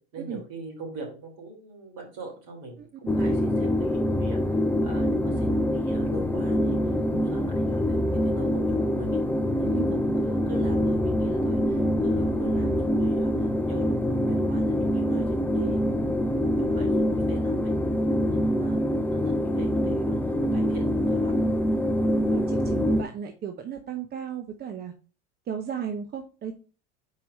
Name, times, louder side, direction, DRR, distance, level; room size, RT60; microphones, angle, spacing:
voice 1, 0.1-9.2 9.6-15.9 16.6-17.7 18.3-21.5, right 2 dB, 55° right, 0 dB, 3.5 m, -42 dB
sound 1, 3.1-23.0, equal, 5° left, 0.5 m, -25 dB
voice 2, 6.9-7.2 9.7-9.9 21.2-21.6 21.9-24.9 25.5-26.5, right 8 dB, 30° right, 6 dB, 0.8 m, -35 dB
4.8 x 4.6 x 5.3 m, 0.37 s
hypercardioid pair, 80°, 35 cm